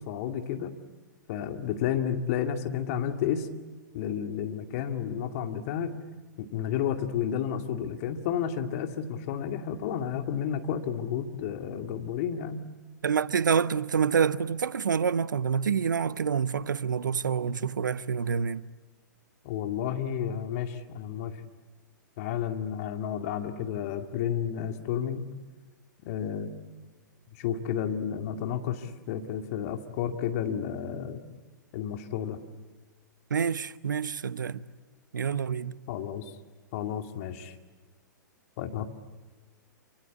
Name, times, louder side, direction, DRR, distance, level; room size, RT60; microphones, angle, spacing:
voice 1, 0.1-0.7 1.3-3.5 3.9-6.0 6.4-12.6 19.4-21.3 22.2-25.3 26.1-26.5 27.4-31.2 31.7-32.4 35.9-36.2 36.7-37.5 38.6-38.9, left 9 dB, 45° left, 2.3 m, -31 dB
voice 2, 13.0-18.7 33.3-34.6 35.1-35.8, right 6 dB, 75° right, 0.8 m, -27 dB
28.0 x 24.5 x 8.5 m
figure-of-eight pair, 110°, 10 cm